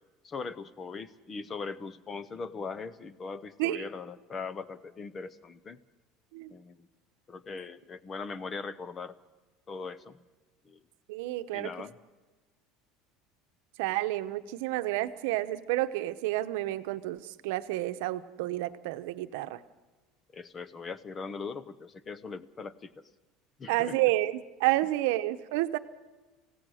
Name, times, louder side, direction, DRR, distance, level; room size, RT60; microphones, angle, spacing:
voice 1, 0.2-5.8 6.5-6.9 7.3-9.1 9.7-10.2 10.6-10.8 11.5-11.9 20.3-22.9 23.6-24.0, left 4 dB, 20° left, 16 dB, 0.7 m, -40 dB
voice 2, 11.1-11.9 13.8-19.6 23.7-25.8, right 16 dB, 75° right, 11 dB, 0.9 m, -30 dB
25.5 x 16.5 x 6.4 m, 1.2 s
cardioid pair, 165°, 0 cm